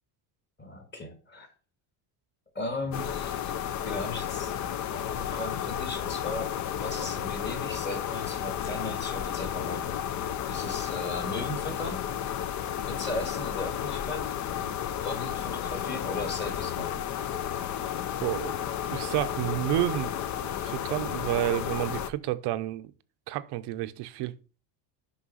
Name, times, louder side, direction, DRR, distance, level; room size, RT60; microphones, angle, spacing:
voice 1, 0.6-1.5 2.6-3.5 3.8-4.5 4.9-9.9 10.5-12.0 12.9-14.3 15.0-17.0, left 2 dB, 25° left, 1.8 m, -37 dB
sound 1, 2.9-22.1, left 10 dB, 40° left, 0.5 m, -32 dB
voice 2, 18.2-20.1 20.4-22.9 23.3-24.3, right 15 dB, 60° right, 0.7 m, -30 dB
6.3 x 5.5 x 5.6 m
cardioid pair, 150°, 46 cm